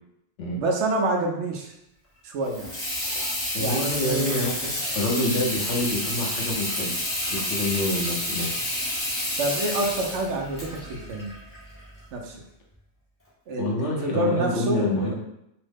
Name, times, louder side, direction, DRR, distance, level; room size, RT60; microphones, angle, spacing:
voice 1, 0.6-1.7 2.2-2.7 3.6-4.4 9.4-11.3 12.1-12.4 13.5-15.1, right 2 dB, 80° right, 1 dB, 0.9 m, -27 dB
Water tap faucet / Sink (filling or washing), 2.4-12.0, left 1 dB, 15° left, 0.5 m, -30 dB
voice 2, 3.5-8.6 13.6-15.1, left 1 dB, 80° left, -1 dB, 1.0 m, -27 dB
3.0 x 2.0 x 3.3 m, 0.80 s
omnidirectional pair, 1.2 m